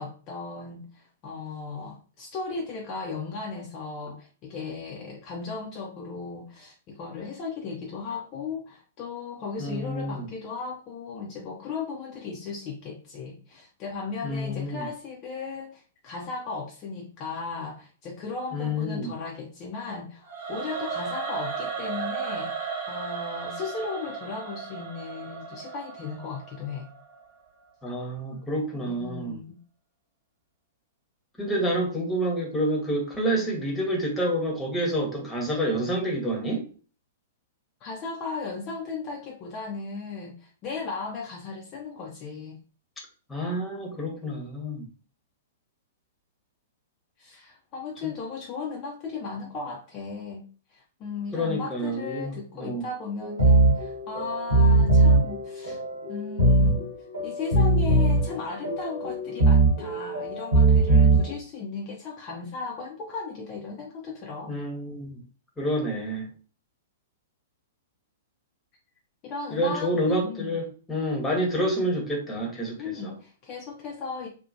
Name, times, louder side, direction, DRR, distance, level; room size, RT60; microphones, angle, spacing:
voice 1, 0.0-26.9 28.9-29.6 37.8-42.6 47.2-55.8 56.1-56.9 57.2-64.5 69.2-70.0 70.2-70.6 72.8-74.3, left 4 dB, 35° left, -1 dB, 0.5 m, -36 dB
voice 2, 9.6-10.3 14.2-14.9 18.5-19.1 27.8-29.3 31.4-36.6 43.3-44.8 48.0-48.1 51.3-52.8 64.5-65.2 65.6-66.3 69.5-72.8 73.0-73.1, equal, 10° left, -1 dB, 0.9 m, -28 dB
Singing / Musical instrument, 20.3-27.4, right 5 dB, 50° right, 0.6 m, -35 dB
sound 1, 53.2-61.3, right 2 dB, 75° right, 1.2 m, -21 dB
2.8 x 2.0 x 2.5 m, 0.38 s
figure-of-eight pair, 105°, 0 cm